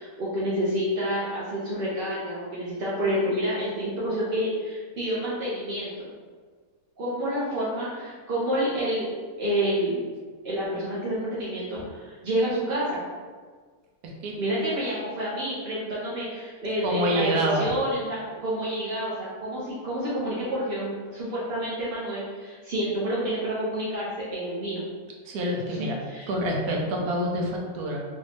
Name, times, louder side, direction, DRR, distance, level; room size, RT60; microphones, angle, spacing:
voice 1, 0.0-6.1 7.0-9.1 9.4-10.0 10.4-13.0 14.4-24.8 25.8-26.3, equal, 55° right, -8 dB, 0.7 m, -29 dB
voice 2, 16.8-17.7 25.2-26.0 26.3-28.0, right 1 dB, 75° right, -1 dB, 1.2 m, -26 dB
3.0 x 2.7 x 3.2 m, 1.5 s
omnidirectional pair, 1.6 m